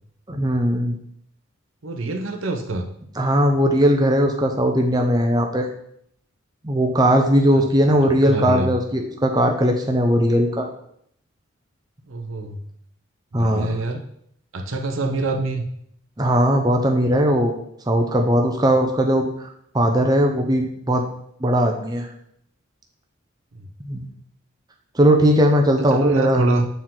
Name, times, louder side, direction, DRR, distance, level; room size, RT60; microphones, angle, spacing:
voice 1, 0.3-1.0 3.2-5.7 6.6-10.7 13.3-13.7 16.2-17.5 17.9-19.5 19.7-21.1 21.4-22.1 23.8-24.1 24.9-26.4, equal, 20° right, 2 dB, 0.7 m, -19 dB
voice 2, 1.8-2.9 7.5-8.7 12.1-12.6 13.3-14.0 14.5-15.7 23.5-23.7 25.9-26.7, right 2 dB, 80° right, 5 dB, 0.8 m, -25 dB
7.9 x 4.6 x 3.9 m, 0.69 s
head